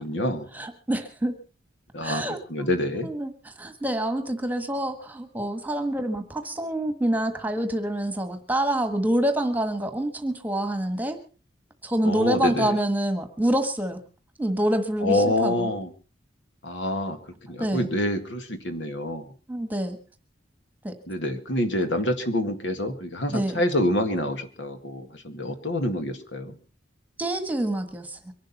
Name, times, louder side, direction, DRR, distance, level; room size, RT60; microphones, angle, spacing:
voice 1, 0.0-0.5 1.9-2.2 2.5-3.1 12.0-12.7 15.0-15.9 16.6-17.2 17.5-19.2 21.1-26.6, left 1 dB, 70° left, 7 dB, 2.0 m, -27 dB
voice 2, 0.5-1.4 2.0-2.7 3.0-11.2 11.8-14.0 14.4-15.7 17.6-17.9 19.5-20.0 20.8-20.9 23.3-23.6 27.2-28.2, right 1 dB, 10° right, 8 dB, 1.5 m, -27 dB
24.0 x 11.5 x 4.2 m, 0.36 s
head